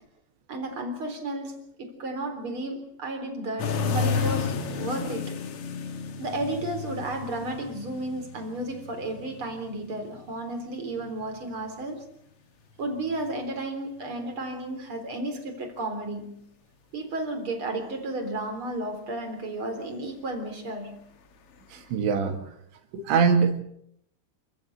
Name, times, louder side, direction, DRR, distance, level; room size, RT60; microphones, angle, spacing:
voice 1, 0.5-5.3 6.2-12.0 12.8-16.4 16.9-21.0, right 2 dB, 30° right, 4.1 m, -33 dB
sound 1, 3.6-11.4 13.0-13.4 21.8-21.9, left 5 dB, 70° left, 1.4 m, -32 dB
voice 2, 21.7-22.4 22.9-23.6, right 5 dB, 80° right, 4.4 m, -23 dB
28.0 x 15.0 x 8.0 m
omnidirectional pair, 5.1 m